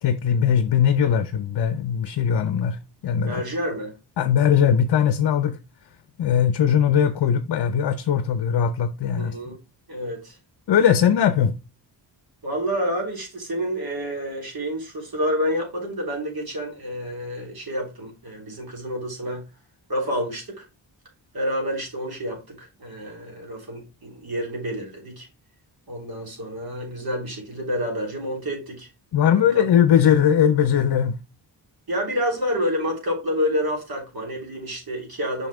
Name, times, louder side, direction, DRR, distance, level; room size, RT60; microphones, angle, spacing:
voice 1, 0.0-3.4 4.2-5.6 6.2-9.5 10.7-11.5 29.1-31.2, left 8 dB, 65° left, 0.7 m, -20 dB
voice 2, 3.2-4.0 9.2-9.6 9.9-10.4 12.4-19.4 19.9-20.7 21.3-25.3 25.9-28.9 29.3-29.6 31.9-35.5, equal, 55° right, 3.5 m, -28 dB
5.9 x 5.7 x 3.5 m
cardioid pair, 75°, 44 cm